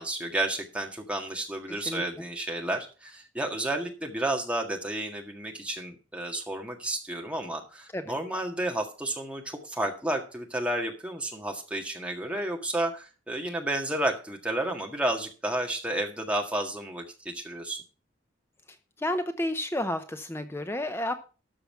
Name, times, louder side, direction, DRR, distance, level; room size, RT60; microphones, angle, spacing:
voice 1, 0.0-17.8, right 1 dB, 5° right, 1 dB, 1.7 m, -31 dB
voice 2, 1.7-2.0 7.9-8.2 18.7-21.1, left 1 dB, 10° left, 9 dB, 0.6 m, -31 dB
13.0 x 5.7 x 5.7 m, 0.35 s
head